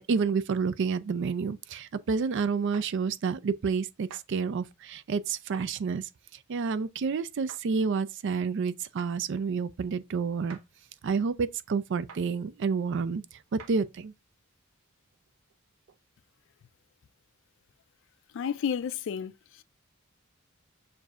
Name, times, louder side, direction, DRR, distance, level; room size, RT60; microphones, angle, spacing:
voice 1, 0.0-6.1 6.5-10.6 11.0-13.2 13.5-14.1, right 5 dB, 60° right, 0.4 m, -29 dB
sound 1, 2.7-2.9 4.1-4.3 5.5-5.7 7.5-7.6 9.0-9.1 10.5-10.7 12.1-12.3 13.6-13.8, right 6 dB, 90° right, 0.8 m, -47 dB
voice 2, 18.3-19.6, left 7 dB, 60° left, 0.3 m, -32 dB
6.6 x 2.7 x 2.4 m
head